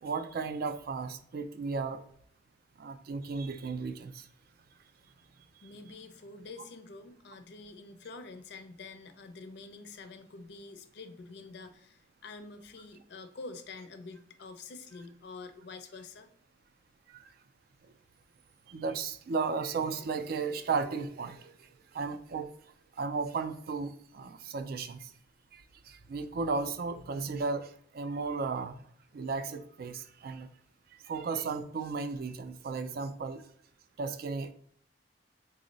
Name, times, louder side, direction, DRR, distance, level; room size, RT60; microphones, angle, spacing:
voice 1, 0.0-2.0 2.8-4.3 17.1-17.3 17.8-17.9 18.7-22.5 22.9-25.1 25.5-28.8 29.1-30.5 30.9-33.4 34.0-34.5, right 4 dB, 55° right, 10 dB, 0.3 m, -35 dB
voice 2, 5.6-16.3, left 3 dB, 65° left, 9 dB, 0.5 m, -47 dB
3.9 x 2.0 x 3.8 m, 0.65 s
head